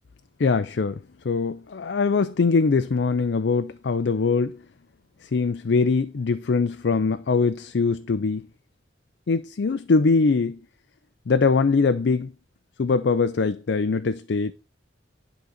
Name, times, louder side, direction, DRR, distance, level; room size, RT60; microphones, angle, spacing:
voice 1, 0.4-4.6 5.2-8.4 9.3-10.6 11.3-12.3 12.8-14.5, left 4 dB, 70° left, 0.5 m, -22 dB
11.0 x 3.9 x 6.4 m
head